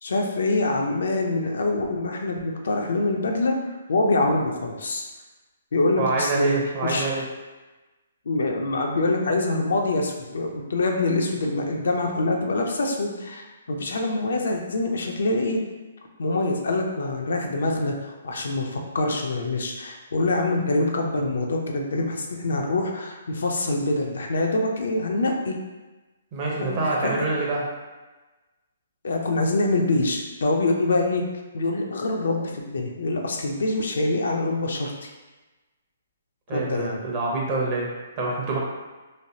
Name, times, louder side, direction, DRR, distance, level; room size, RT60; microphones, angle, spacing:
voice 1, 0.0-3.6 3.9-5.0 5.7-7.1 8.3-15.6 16.2-25.6 26.6-27.2 29.0-31.2 31.5-35.1 36.5-37.0, left 2 dB, 75° left, 1 dB, 0.5 m, -25 dB
voice 2, 6.0-7.2 26.3-27.6 36.5-38.6, right 3 dB, 35° right, -4 dB, 0.7 m, -26 dB
3.2 x 2.4 x 2.7 m, 1.2 s
hypercardioid pair, 155°, 0 cm